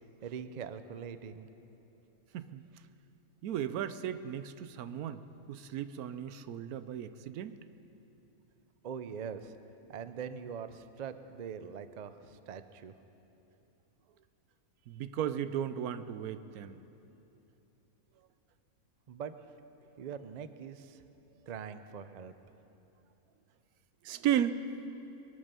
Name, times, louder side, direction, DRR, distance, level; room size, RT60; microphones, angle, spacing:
voice 1, 0.2-1.5 8.8-9.6 9.9-12.9 19.1-19.4 20.0-21.0 21.4-22.3, right 7 dB, 55° right, 11 dB, 0.4 m, -42 dB
voice 2, 3.4-5.2 5.5-7.5 14.9-16.8 24.0-24.6, right 10 dB, 85° right, 12 dB, 1.1 m, -35 dB
22.0 x 9.0 x 6.8 m, 3.0 s
omnidirectional pair, 1.5 m